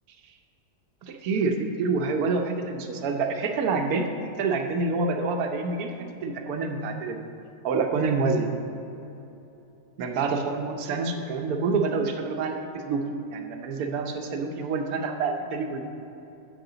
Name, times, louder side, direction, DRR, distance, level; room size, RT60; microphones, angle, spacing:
voice 1, 1.0-4.1 4.4-7.2 7.6-8.5 10.0-12.6 12.9-13.0 13.3-15.8, right 4 dB, 65° right, 4 dB, 1.2 m, -27 dB
11.0 x 8.0 x 3.9 m, 3.0 s
omnidirectional pair, 1.8 m